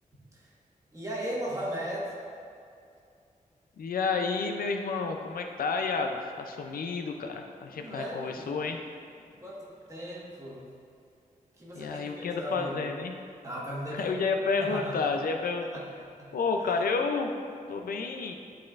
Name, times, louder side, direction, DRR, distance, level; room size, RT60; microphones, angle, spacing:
voice 1, 0.9-2.2 7.8-8.7 9.4-10.6 11.6-12.9 13.4-14.2 14.6-15.1 15.7-15.9 16.2-16.3 16.6-16.9, equal, 20° right, -6 dB, 1.5 m, -37 dB
voice 2, 3.8-8.8 11.7-13.1 13.9-15.7 16.3-17.3 17.7-18.3, left 4 dB, 90° left, 4 dB, 0.5 m, -30 dB
11.0 x 4.1 x 2.5 m, 2.4 s
wide cardioid pair, 120°, 15 cm